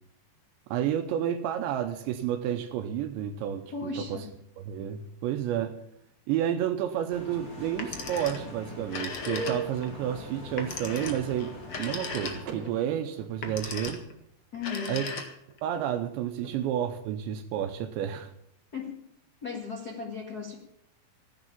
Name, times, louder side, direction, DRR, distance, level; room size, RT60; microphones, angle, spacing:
voice 1, 0.7-4.3 4.6-5.8 6.3-14.0 14.9-15.1 15.6-18.3, right 10 dB, 85° right, 7 dB, 3.1 m, -30 dB
voice 2, 3.7-4.3 14.5-15.0 16.4-16.5 18.7-18.9 19.4-20.6, left 5 dB, 75° left, 2 dB, 0.8 m, -36 dB
sound 1, 7.1-12.4, equal, 40° left, 1.3 m, -40 dB
Telephone, 7.7-8.5 8.8-9.9 10.6-12.7 13.3-14.1 14.5-15.6, left 4 dB, 60° left, 1.4 m, -37 dB
Car / Door, 12.4-14.4, right 5 dB, 60° right, 3.8 m, -45 dB
15.0 x 9.6 x 7.3 m, 0.74 s
omnidirectional pair, 5.2 m